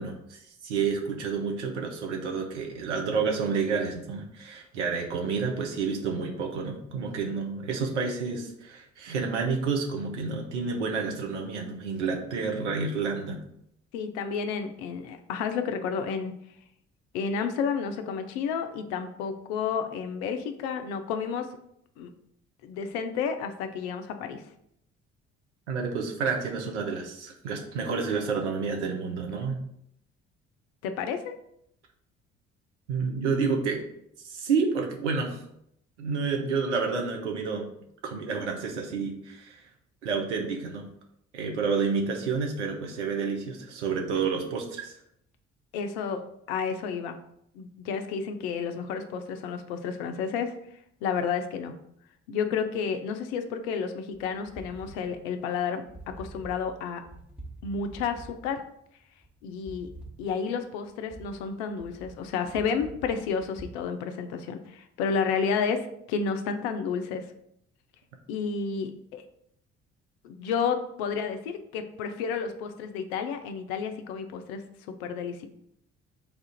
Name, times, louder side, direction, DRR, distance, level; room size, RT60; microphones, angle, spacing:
voice 1, 0.0-13.4 25.7-29.6 32.9-33.8 34.2-35.4 36.0-37.7 38.0-39.6 40.0-40.9 41.3-44.9, right 5 dB, 75° right, 2 dB, 0.6 m, -29 dB
voice 2, 13.9-16.3 17.1-21.5 22.0-22.1 22.6-24.4 30.8-31.3 45.7-46.2 46.5-47.2 47.5-50.5 51.0-51.7 52.3-57.0 57.6-58.6 59.4-59.9 60.2-67.3 68.3-69.2 70.2-74.6 74.9-75.5, left 6 dB, 65° left, 7 dB, 0.5 m, -31 dB
sound 1, 54.1-63.7, right 2 dB, 5° right, 1.0 m, -47 dB
3.4 x 2.4 x 4.1 m, 0.75 s
figure-of-eight pair, 45°, 35 cm